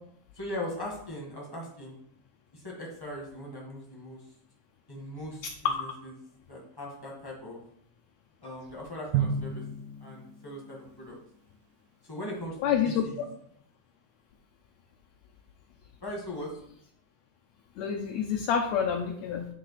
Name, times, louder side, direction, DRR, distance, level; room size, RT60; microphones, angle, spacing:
voice 1, 0.3-2.0 2.5-4.2 4.9-6.1 6.5-7.6 8.4-9.6 10.0-11.2 12.0-12.6 12.8-13.3 16.0-16.5, left 1 dB, 15° left, -3 dB, 0.9 m, -39 dB
Drum, 9.1-10.9, right 7 dB, 85° right, 2.1 m, -31 dB
voice 2, 12.6-13.0 17.8-19.5, left 8 dB, 75° left, 3 dB, 1.8 m, -27 dB
10.0 x 3.5 x 5.7 m, 0.68 s
omnidirectional pair, 3.6 m